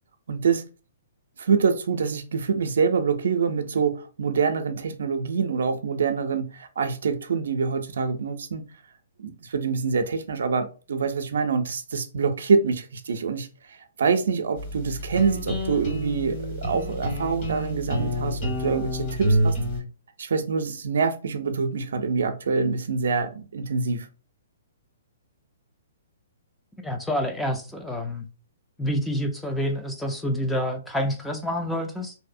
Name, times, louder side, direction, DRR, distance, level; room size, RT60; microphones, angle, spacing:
voice 1, 0.3-0.6 1.4-8.6 9.2-13.5 14.0-19.5 20.2-24.1, right 5 dB, 75° right, 0.4 m, -25 dB
sound 1, 14.6-19.8, equal, 40° left, 1.3 m, -28 dB
voice 2, 26.8-28.3 28.8-32.1, equal, 5° left, 0.3 m, -28 dB
2.6 x 2.0 x 2.5 m
hypercardioid pair, 145°, 0 cm